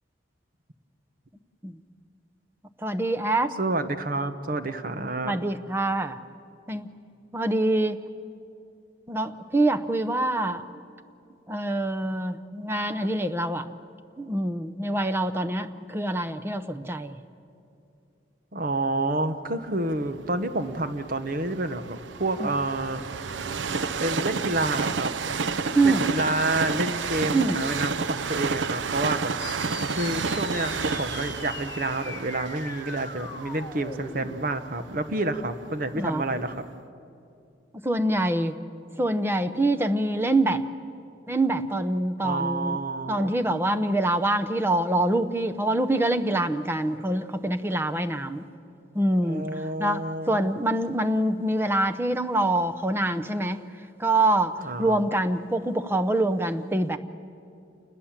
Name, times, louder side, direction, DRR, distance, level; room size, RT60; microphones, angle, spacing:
voice 1, 2.8-3.5 5.2-6.2 6.7-6.9 7.3-8.0 9.1-10.6 11.5-13.7 14.2-17.1 22.4-22.5 25.7-26.1 27.3-27.6 35.9-36.2 37.8-38.6 39.0-40.6 41.3-42.8 43.1-48.5 48.9-53.6 54.0-57.0, right 1 dB, 15° right, 8 dB, 0.8 m, -25 dB
voice 2, 3.6-5.3 18.5-23.0 24.0-25.4 25.8-29.3 29.7-36.5 42.2-43.3 49.2-50.5 54.6-55.0, right 2 dB, 50° right, 10 dB, 1.1 m, -29 dB
Train, 19.9-35.9 36.5-36.6, right 5 dB, 85° right, 0.7 m, -31 dB
sound 1, 29.4-34.4, left 4 dB, 20° left, 1.8 m, -40 dB
28.5 x 20.5 x 7.4 m, 2.6 s
head